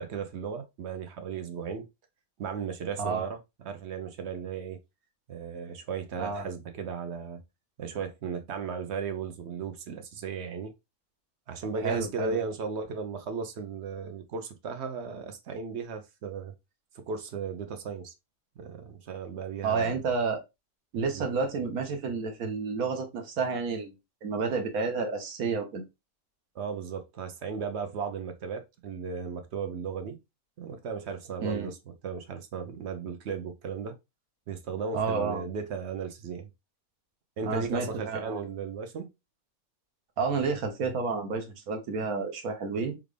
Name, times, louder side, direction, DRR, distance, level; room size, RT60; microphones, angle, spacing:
voice 1, 0.0-1.9 2.4-3.4 3.6-4.8 5.3-7.4 7.8-10.7 11.5-16.5 16.9-18.1 18.6-20.0 21.1-21.3 26.5-30.2 30.6-34.0 34.5-36.5 37.4-39.1, right 6 dB, 60° right, 0.7 m, -36 dB
voice 2, 11.8-12.4 19.6-20.4 20.9-23.9 24.2-25.8 31.4-31.7 34.9-35.4 37.4-38.4 40.2-43.0, right 4 dB, 80° right, 1.3 m, -30 dB
3.6 x 2.4 x 3.2 m
omnidirectional pair, 1.5 m